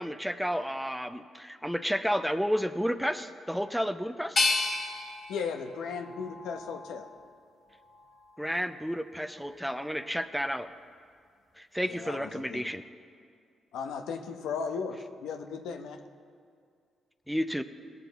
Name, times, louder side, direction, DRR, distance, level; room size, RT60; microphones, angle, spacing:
voice 1, 0.0-4.4 8.4-10.7 11.6-12.8 17.3-17.6, equal, ahead, 10 dB, 0.6 m, -31 dB
sound 1, 4.4-7.3 7.8-8.6, left 3 dB, 50° left, 1.7 m, -33 dB
voice 2, 5.3-7.1 11.9-12.7 13.7-16.0, left 5 dB, 80° left, 5 dB, 0.8 m, -36 dB
18.0 x 7.0 x 4.0 m, 2.2 s
supercardioid pair, 55°, 0 cm